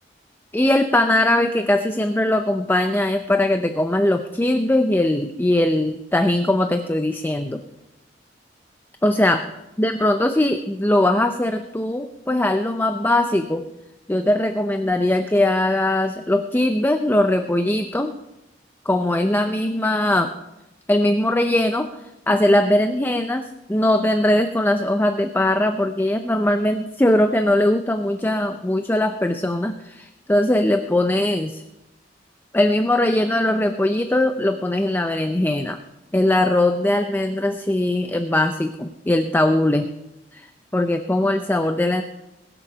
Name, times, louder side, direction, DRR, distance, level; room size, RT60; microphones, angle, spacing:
voice 1, 0.5-7.6 9.0-9.4 9.8-13.6 14.1-18.1 18.9-20.3 20.9-22.0 22.3-31.6 32.5-35.8 36.1-39.9 40.3-40.5 40.7-42.0, left 1 dB, 10° left, 7 dB, 0.5 m, -20 dB
21.0 x 7.0 x 5.7 m, 0.94 s
head